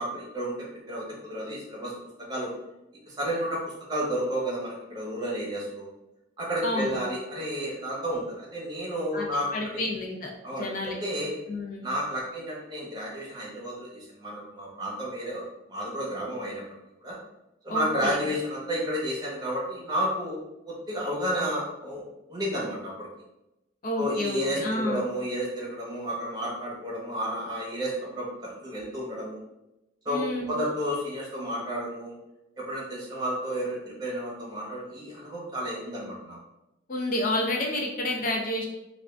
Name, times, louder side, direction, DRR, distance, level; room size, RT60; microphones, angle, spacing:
voice 1, 0.0-1.9 2.3-2.5 3.1-3.6 3.9-5.9 6.4-9.5 10.4-10.7 11.0-11.3 11.8-15.4 15.7-16.6 17.0-17.2 17.6-20.4 20.7-22.0 22.3-23.1 23.9-29.4 30.0-30.2 30.5-32.1 32.6-36.4, equal, 20° right, -5 dB, 0.9 m, -31 dB
voice 2, 6.6-7.0 9.1-11.0 11.5-11.8 17.7-18.2 23.8-25.1 30.1-30.5 36.9-38.7, left 1 dB, 45° left, 0 dB, 0.5 m, -30 dB
3.5 x 2.4 x 3.3 m, 0.93 s
head